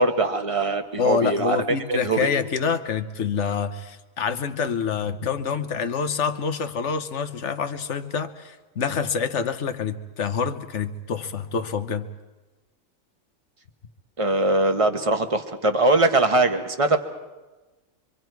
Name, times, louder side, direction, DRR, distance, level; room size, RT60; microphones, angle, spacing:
voice 1, 0.0-2.3 14.2-17.0, right 2 dB, 25° right, 7 dB, 1.1 m, -21 dB
voice 2, 1.0-12.1, left 6 dB, 60° left, 10 dB, 1.2 m, -26 dB
25.5 x 24.5 x 4.7 m, 1.2 s
omnidirectional pair, 1.4 m